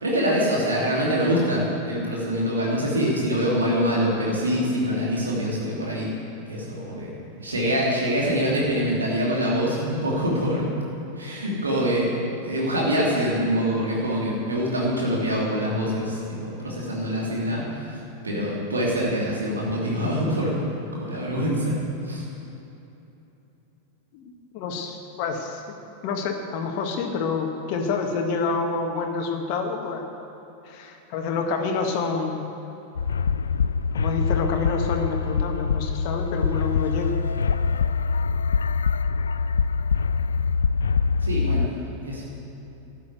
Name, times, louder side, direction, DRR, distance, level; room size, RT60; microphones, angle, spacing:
voice 1, 0.0-6.1 6.5-7.1 7.4-10.6 11.2-12.1 12.4-18.0 18.2-20.6 20.9-21.7 22.0-22.3 41.2-41.7 42.0-42.2, equal, 75° right, -4 dB, 2.9 m, -24 dB
voice 2, 24.1-25.6 26.0-30.1 30.7-32.4 33.9-37.1, left 4 dB, 45° left, 3 dB, 1.6 m, -28 dB
sound 1, 33.0-41.7, left 5 dB, 70° left, 0.4 m, -24 dB
12.5 x 9.0 x 8.1 m, 3.0 s
figure-of-eight pair, 90°, 0 cm